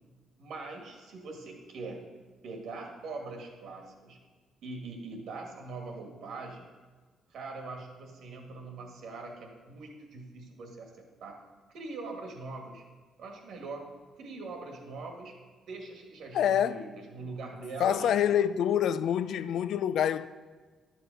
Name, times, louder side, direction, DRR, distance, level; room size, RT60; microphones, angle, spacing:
voice 1, 0.4-2.1 2.4-4.2 4.6-6.7 7.3-11.4 11.7-12.8 13.2-13.9 14.2-15.3 15.7-18.1, right 3 dB, 75° right, 1.8 m, -42 dB
voice 2, 16.3-16.8 17.8-20.3, left 9 dB, 75° left, 0.4 m, -26 dB
11.0 x 6.1 x 5.3 m
cardioid pair, 90°, 0 cm